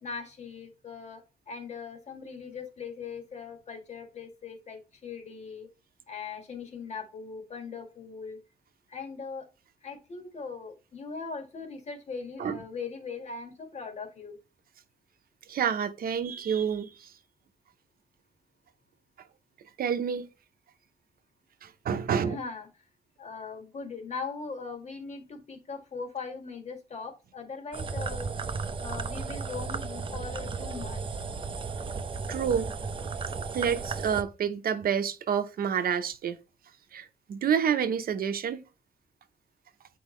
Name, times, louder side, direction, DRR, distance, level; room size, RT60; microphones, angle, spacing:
voice 1, 0.0-5.7 6.1-8.4 8.9-9.5 9.8-14.4 22.2-22.7 23.2-28.3 28.8-31.1, left 5 dB, 45° left, 1.8 m, -40 dB
voice 2, 15.5-17.1 19.8-20.3 21.6-22.4 32.3-32.7 33.5-36.4 36.9-38.6, right 7 dB, 70° right, 0.8 m, -28 dB
sound 1, 27.7-34.2, right 4 dB, 35° right, 0.6 m, -34 dB
8.2 x 4.7 x 3.1 m
wide cardioid pair, 140°, 16 cm